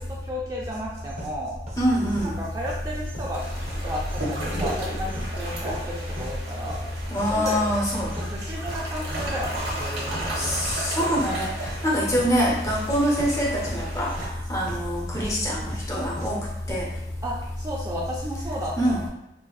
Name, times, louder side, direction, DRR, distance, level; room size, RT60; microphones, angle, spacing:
voice 1, 0.0-1.6 2.2-3.5 3.8-6.8 7.3-7.6 8.2-10.7 17.2-19.1, equal, 20° right, -4 dB, 0.3 m, -33 dB
sound 1, 0.7-16.7, equal, 40° right, 0.7 m, -40 dB
voice 2, 1.8-2.4 7.1-8.1 10.4-14.1 14.5-16.4 16.7-16.9 18.8-19.0, equal, 20° left, -4 dB, 0.6 m, -24 dB
sound 2, 3.3-14.3, right 1 dB, 65° right, 0.9 m, -35 dB
4.0 x 2.2 x 2.3 m, 0.85 s
head